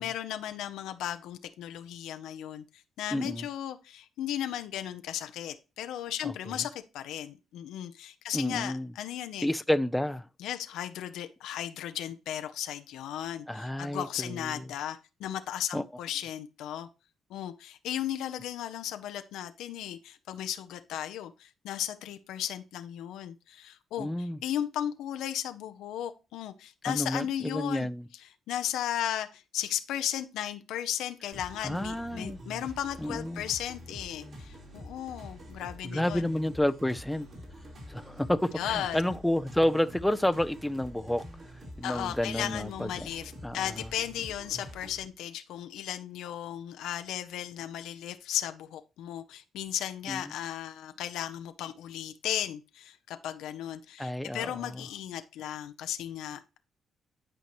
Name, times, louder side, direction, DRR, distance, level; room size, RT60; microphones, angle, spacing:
voice 1, 0.0-2.6 3.0-9.5 10.4-16.9 17.3-27.9 28.5-36.3 38.6-39.0 41.8-56.6, left 11 dB, 85° left, 0.6 m, -35 dB
voice 2, 3.1-3.5 6.2-6.3 6.6-6.7 8.3-8.9 9.4-10.3 13.5-14.7 15.7-15.8 24.0-24.4 26.8-28.1 31.6-32.4 33.0-33.4 35.9-37.3 37.9-41.2 41.8-43.1 43.4-43.9 50.1-50.2 54.0-54.8, left 1 dB, 5° left, 0.5 m, -30 dB
sound 1, 31.3-45.0, equal, 55° right, 3.9 m, -46 dB
11.0 x 4.5 x 3.0 m
cardioid pair, 90°, 0 cm